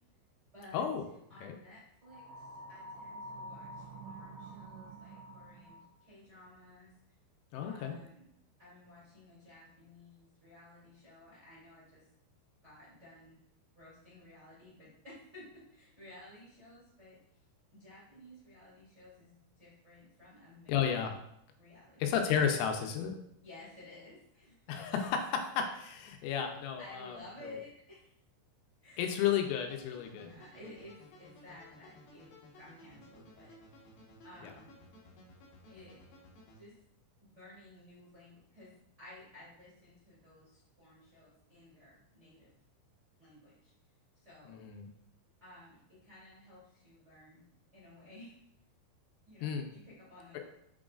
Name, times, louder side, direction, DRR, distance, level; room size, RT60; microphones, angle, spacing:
voice 1, 0.5-0.9 1.3-6.9 7.6-8.3 8.6-12.0 12.6-13.4 13.7-17.2 17.7-21.1 21.6-22.1 23.4-24.5 26.1-26.3 26.8-28.1 28.8-29.1 30.1-33.8 34.2-34.7 35.7-36.0 36.5-36.8 37.2-42.5 43.2-43.7 44.1-44.6 45.4-47.4 47.7-48.4 49.2-50.4, left 2 dB, 50° right, -9 dB, 0.8 m, -55 dB
sound 1, 2.0-6.0, right 1 dB, 85° right, 2.7 m, -48 dB
voice 2, 7.5-7.9 20.7-21.2 22.0-23.1 24.7-27.2 29.0-30.3 34.4-34.5 44.5-44.9 49.4-49.7, left 8 dB, 85° left, 4 dB, 3.3 m, -32 dB
sound 2, 29.0-36.6, left 1 dB, 65° left, 2.6 m, -57 dB
6.8 x 6.2 x 2.4 m, 0.74 s
omnidirectional pair, 5.8 m